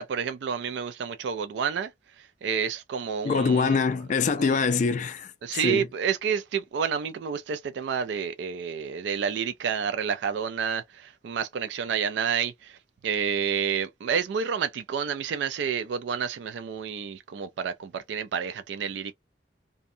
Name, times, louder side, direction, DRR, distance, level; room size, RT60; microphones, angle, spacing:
voice 1, 0.0-1.9 2.4-3.8 4.4-4.6 5.4-12.8 13.0-19.1, right 7 dB, 75° right, 0.3 m, -29 dB
voice 2, 3.2-5.9, left 5 dB, 45° left, 0.3 m, -24 dB
2.6 x 2.1 x 2.6 m
head